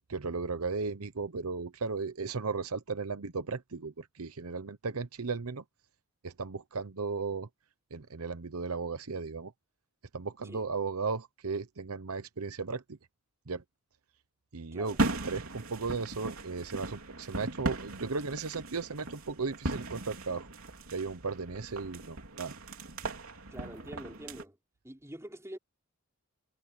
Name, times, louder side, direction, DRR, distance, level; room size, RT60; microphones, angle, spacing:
voice 1, 0.1-5.6 6.2-7.5 7.9-9.5 10.1-13.0 13.5-13.6 14.5-15.0 15.2-20.5 20.9-22.6, right 4 dB, 85° right, 0.9 m, -35 dB
sound 1, 14.9-24.4, right 2 dB, 70° right, 3.9 m, -37 dB
voice 2, 23.5-24.6 24.8-25.6, right 1 dB, 15° right, 4.8 m, -45 dB
head